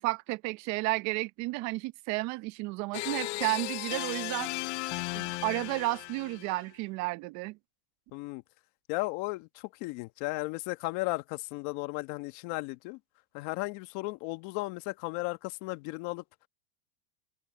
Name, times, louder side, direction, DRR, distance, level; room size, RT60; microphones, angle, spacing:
voice 1, 0.0-4.5 5.1-7.6, right 22 dB, 50° right, 0.8 m, -32 dB
sound 1, 2.9-6.6, left 22 dB, 70° left, 0.7 m, -36 dB
voice 2, 8.1-8.4 8.9-13.0 13.3-16.2, left 23 dB, 55° left, 1.3 m, -35 dB
supercardioid pair, 135°, 36 cm